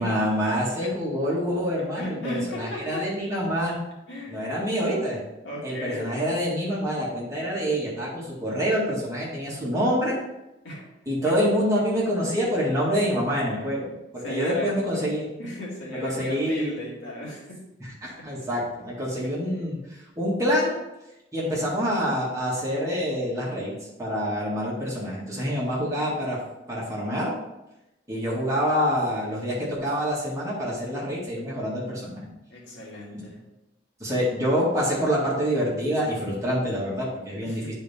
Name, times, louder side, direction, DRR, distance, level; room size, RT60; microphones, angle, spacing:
voice 1, 0.0-3.8 4.3-5.2 5.6-10.2 11.1-15.3 15.9-16.8 17.8-19.8 20.2-20.8 21.3-23.7 24.0-26.4 26.7-27.3 28.1-32.3 33.1-33.2 34.0-37.7, equal, 15° right, -6 dB, 2.1 m, -26 dB
voice 2, 2.0-3.1 4.1-4.6 5.4-6.4 10.6-10.9 11.2-11.4 13.6-14.8 15.4-17.7 18.2-18.3 19.2-19.7 32.5-33.4 37.4-37.7, left 1 dB, 80° left, -4 dB, 2.2 m, -36 dB
9.3 x 4.3 x 3.6 m, 0.94 s
head